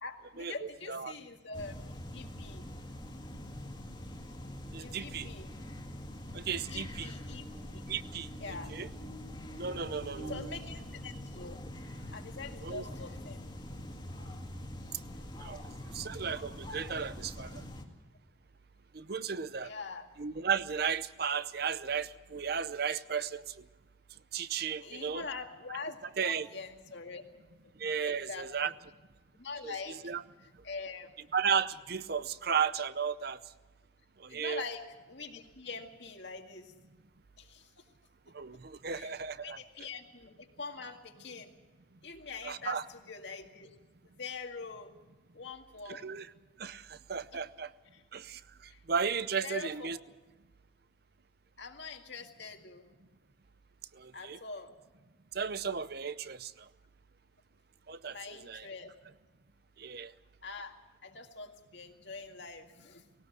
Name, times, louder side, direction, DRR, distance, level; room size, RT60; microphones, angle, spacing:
voice 1, 0.0-2.6 4.8-5.5 6.7-7.4 7.7-7.8 8.4-8.7 10.3-11.6 12.1-13.4 15.1-15.6 19.6-20.1 24.8-27.2 27.6-27.7 28.0-28.7 29.3-30.0 30.6-31.1 34.3-36.7 37.4-37.7 38.9-39.2 39.4-41.5 42.0-43.8 44.2-44.9 45.3-46.0 47.3-47.4 47.9-48.0 48.7-48.8 49.4-49.9 51.6-52.8 54.1-54.7 58.1-58.9 60.4-60.8 61.0-63.0, left 4 dB, 60° left, 4 dB, 2.1 m, -44 dB
sound 1, 1.5-17.8, left 1 dB, 25° left, 2.0 m, -44 dB
voice 2, 4.7-5.3 6.3-7.1 7.9-8.3 8.7-8.9 9.6-10.3 12.6-12.8 15.4-17.6 18.9-19.7 20.2-23.7 24.3-25.3 26.2-26.5 27.8-28.7 29.6-30.2 30.5-30.6 31.3-33.4 34.2-34.6 38.3-39.6 42.4-42.8 45.9-46.3 46.6-47.7 48.1-50.0 53.9-54.4 55.3-56.7 57.9-58.7 59.8-60.1, right 6 dB, 50° right, 15 dB, 0.7 m, -35 dB
19.5 x 18.0 x 7.9 m, 1.2 s
head